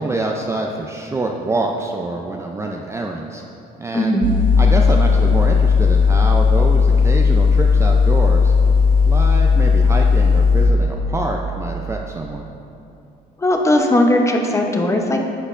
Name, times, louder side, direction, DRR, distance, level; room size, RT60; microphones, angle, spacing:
voice 1, 0.0-3.4 3.8-4.2 4.6-8.5 9.0-12.4, right 2 dB, 15° right, 1 dB, 0.4 m, -25 dB
voice 2, 3.9-4.3 13.4-15.2, left 1 dB, 15° left, 2 dB, 0.7 m, -17 dB
sound 1, 4.2-10.7, left 5 dB, 55° right, 0.7 m, -14 dB
10.0 x 6.5 x 2.5 m, 2.7 s
cardioid pair, 110°, 17 cm